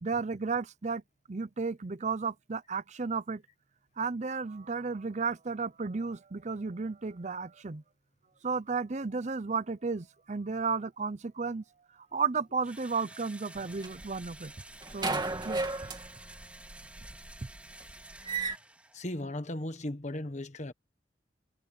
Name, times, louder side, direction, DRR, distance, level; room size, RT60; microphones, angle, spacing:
voice 1, 0.0-1.0 1.3-3.4 4.0-7.8 8.4-11.6 12.1-14.5 14.9-15.6, right 4 dB, 40° right, 0.6 m, -33 dB
Engine / Drill, 12.6-19.2, right 2 dB, 10° right, 3.5 m, -51 dB
sound 1, 13.6-14.5 14.8-18.6, right 3 dB, 25° right, 2.5 m, -34 dB
voice 2, 18.9-20.7, left 1 dB, 40° left, 1.3 m, -36 dB
head